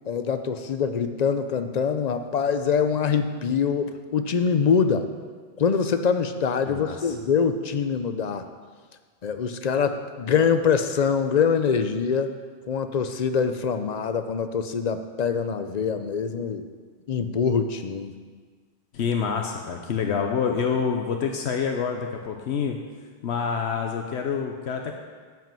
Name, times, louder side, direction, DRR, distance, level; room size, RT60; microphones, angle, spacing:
voice 1, 0.1-5.1 5.6-8.5 9.2-12.3 12.7-16.7 17.1-18.1, left 6 dB, 45° left, 9 dB, 0.6 m, -24 dB
voice 2, 6.7-7.1 18.9-22.8 23.2-24.9, left 6 dB, 80° left, 3 dB, 1.0 m, -27 dB
9.2 x 5.8 x 7.6 m, 1.6 s
omnidirectional pair, 1.1 m